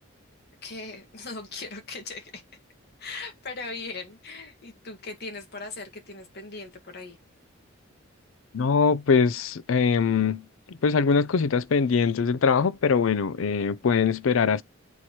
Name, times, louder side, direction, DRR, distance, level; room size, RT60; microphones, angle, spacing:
voice 1, 0.6-2.4 3.0-7.2, left 3 dB, 55° left, 1.8 m, -39 dB
voice 2, 8.5-14.6, left 5 dB, 85° left, 0.5 m, -22 dB
8.1 x 4.2 x 3.0 m
head